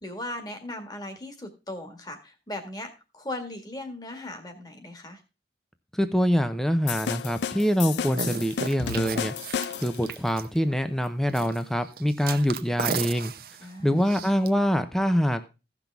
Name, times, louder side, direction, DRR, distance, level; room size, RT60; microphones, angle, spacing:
voice 1, 0.0-5.2 13.6-14.1, left 1 dB, 20° left, 6 dB, 1.8 m, -38 dB
voice 2, 5.9-9.3 9.8-13.3 13.8-15.5, equal, 5° left, 9 dB, 0.6 m, -25 dB
sound 1, 6.9-10.1, left 7 dB, 80° left, 0.4 m, -32 dB
sound 2, 8.2-10.7 11.3-11.6 11.9-14.5, right 6 dB, 55° right, 0.7 m, -35 dB
16.0 x 6.1 x 3.4 m, 0.28 s
head